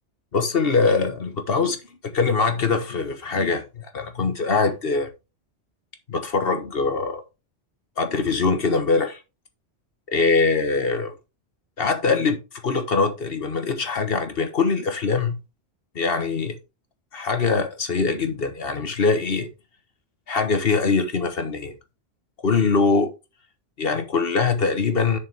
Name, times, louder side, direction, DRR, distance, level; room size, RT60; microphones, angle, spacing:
voice 1, 0.3-1.8 2.0-5.1 6.1-7.2 8.0-9.2 10.1-11.1 11.8-15.4 15.9-16.6 17.1-19.5 20.3-21.7 22.4-23.1 23.8-25.2, left 4 dB, 55° left, 1.4 m, -22 dB
7.5 x 6.7 x 3.5 m
omnidirectional pair, 1.2 m